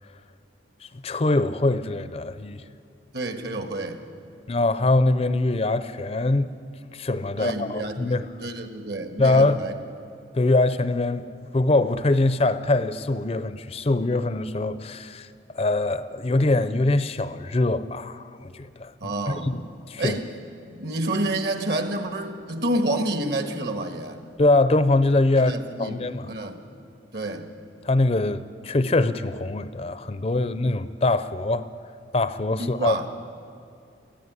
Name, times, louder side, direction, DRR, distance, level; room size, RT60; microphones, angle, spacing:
voice 1, 0.8-2.6 4.5-6.5 6.9-8.2 9.2-9.6 10.3-15.3 15.5-20.2 24.4-25.5 25.8-26.3 27.8-31.7 32.1-33.1, left 2 dB, 30° left, 0.5 m, -23 dB
voice 2, 3.1-4.0 7.4-9.7 19.0-19.6 20.0-20.3 20.7-24.2 25.3-25.9 26.3-26.7 27.1-27.5 32.6-33.1, right 1 dB, 60° right, 1.5 m, -29 dB
19.5 x 14.5 x 9.6 m
head